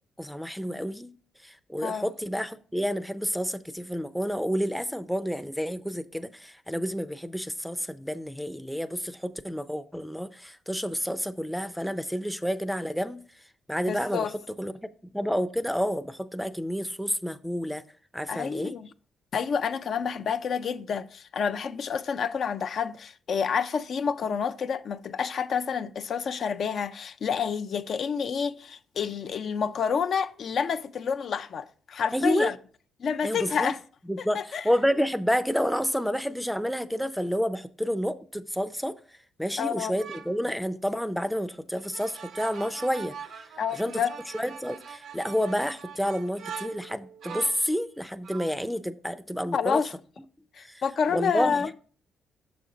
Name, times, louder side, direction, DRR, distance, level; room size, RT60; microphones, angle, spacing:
voice 1, 0.2-1.1 1.4-13.2 13.7-14.3 14.6-14.9 15.1-17.8 18.1-18.7 32.1-32.5 33.2-33.7 34.1-38.9 39.4-43.1 43.7-44.0 44.3-49.8 50.6-50.8 51.1-51.7, equal, ahead, 0.5 m, -29 dB
voice 2, 13.9-14.3 18.3-18.9 19.3-32.5 33.0-33.8 34.2-34.6 39.6-39.9 43.6-44.1 49.5-49.9 50.5-51.7, left 6 dB, 55° left, 0.4 m, -29 dB
sound 1, 40.0-40.4 41.8-47.7 48.2-48.6, right 7 dB, 70° right, 0.6 m, -42 dB
6.7 x 5.1 x 3.8 m
cardioid pair, 90°, 0 cm